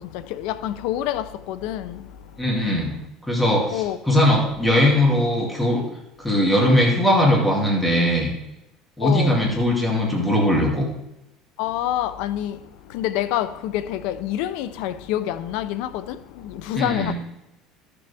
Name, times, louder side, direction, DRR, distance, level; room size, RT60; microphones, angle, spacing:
voice 1, 0.4-1.9 3.7-4.0 9.0-9.3 11.6-12.6 12.9-16.0 16.7-17.1, left 12 dB, 75° left, 0.6 m, -26 dB
voice 2, 2.4-3.0 3.3-5.8 6.2-8.3 9.0-10.9 16.7-17.1, left 1 dB, 10° left, 2.4 m, -20 dB
13.5 x 6.9 x 3.4 m
cardioid pair, 130°, 0 cm